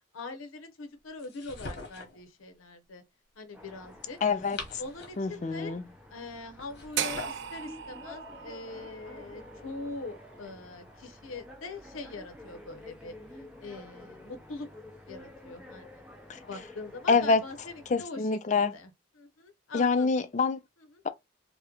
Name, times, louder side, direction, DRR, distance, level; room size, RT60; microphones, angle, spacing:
voice 1, 0.1-3.0 3.4-4.2 4.8-5.7 6.1-14.7 15.1-16.0 16.4-18.9 19.2-20.1 20.8-21.0, left 3 dB, 85° left, 0.6 m, -43 dB
sound 1, 1.2-2.2 4.2-5.3 6.6-7.5, left 3 dB, 55° left, 1.0 m, -42 dB
sound 2, 3.5-18.0, left 1 dB, 5° right, 0.7 m, -50 dB
voice 2, 4.2-4.8 5.2-5.8 16.3-16.4 17.1-17.4 17.9-18.7 19.7-20.6, left 4 dB, 35° left, 0.3 m, -26 dB
sound 3, 7.0-11.1, right 9 dB, 60° right, 0.3 m, -38 dB
3.6 x 2.1 x 2.9 m
head